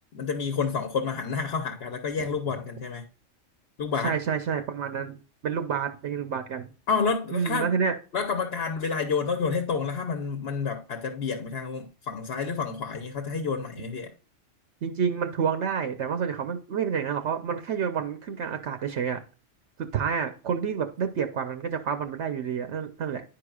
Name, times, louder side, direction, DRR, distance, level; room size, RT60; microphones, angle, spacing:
voice 1, 0.1-3.1 3.8-4.2 6.9-7.7 8.1-14.1, left 5 dB, 60° left, 1.1 m, -29 dB
voice 2, 4.0-5.2 5.4-6.7 7.3-8.0 14.8-19.2 19.8-23.2, right 7 dB, 70° right, 1.0 m, -29 dB
10.5 x 4.8 x 2.3 m
omnidirectional pair, 1.3 m